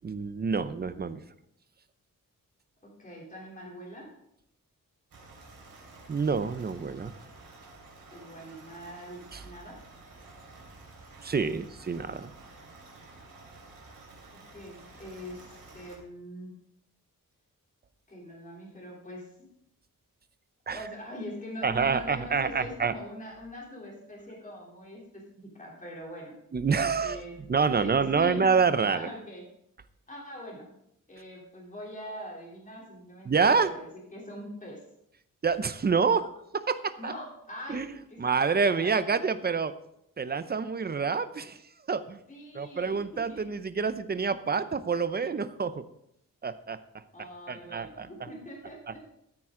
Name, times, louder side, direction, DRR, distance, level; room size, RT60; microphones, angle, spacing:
voice 1, 0.0-1.2 6.1-7.1 9.3-9.4 11.2-12.3 20.7-20.8 21.6-22.9 26.5-29.1 33.3-33.7 35.4-37.1 37.7-37.9 38.2-39.7 40.2-41.6 41.9-42.2 42.5-45.8 46.4-47.0 47.5-48.1, right 5 dB, 30° right, 13 dB, 0.5 m, -27 dB
voice 2, 2.8-4.1 8.1-9.8 14.5-16.5 18.1-19.3 20.7-26.3 27.0-27.4 27.7-28.5 28.9-29.4 30.1-30.7 31.1-34.8 37.0-37.8 38.1-38.4 38.6-39.1 42.3-43.4 47.1-49.0, equal, 25° left, -3 dB, 3.2 m, -43 dB
sound 1, 5.1-16.0, right 3 dB, 85° right, 3.6 m, -51 dB
13.5 x 9.0 x 3.7 m, 0.76 s
wide cardioid pair, 170°, 34 cm